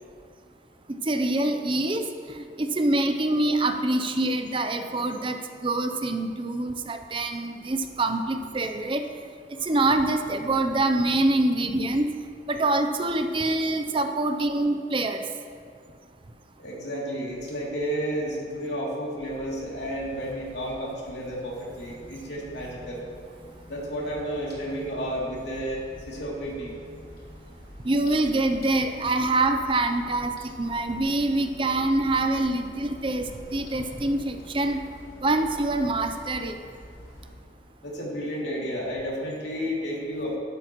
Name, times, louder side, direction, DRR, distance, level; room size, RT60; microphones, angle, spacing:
voice 1, 0.9-9.1 9.5-12.1 12.5-15.2 27.8-34.8 35.2-36.6, right 2 dB, 30° right, 6 dB, 0.6 m, -25 dB
voice 2, 16.6-23.0 23.7-26.7 37.8-40.4, equal, 70° left, -4 dB, 2.7 m, -32 dB
sound 1, 19.2-37.4, equal, 55° left, 3.0 m, -47 dB
12.5 x 12.0 x 3.0 m, 2.2 s
head